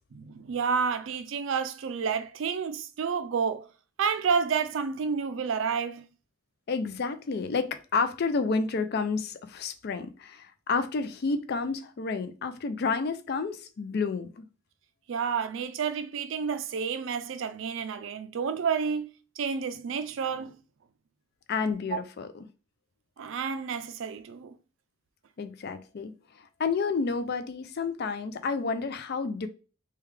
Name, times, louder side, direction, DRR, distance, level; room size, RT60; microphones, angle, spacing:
voice 1, 0.1-3.7 4.0-6.1 15.1-19.1 19.4-20.5 21.9-22.0 23.2-24.5, right 6 dB, 70° right, 0.4 m, -30 dB
voice 2, 6.7-14.4 21.5-22.3 25.4-26.1 26.4-29.5, left 4 dB, 50° left, 0.4 m, -30 dB
3.4 x 2.3 x 3.2 m
head